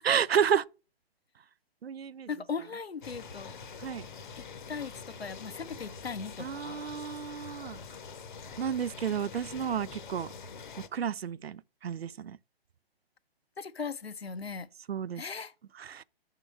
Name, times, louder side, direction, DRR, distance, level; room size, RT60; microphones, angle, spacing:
voice 1, 0.0-0.6 1.8-2.3 3.8-4.1 6.4-7.8 8.6-10.3 10.9-12.4 14.9-15.2 15.8-16.0, right 8 dB, 80° right, 0.5 m, -31 dB
voice 2, 2.3-3.5 4.4-6.9 13.6-14.7 15.1-15.5, left 5 dB, 85° left, 0.7 m, -38 dB
sound 1, 3.0-10.9, left 5 dB, 55° left, 0.9 m, -45 dB
6.5 x 3.7 x 6.1 m
figure-of-eight pair, 135°, 30 cm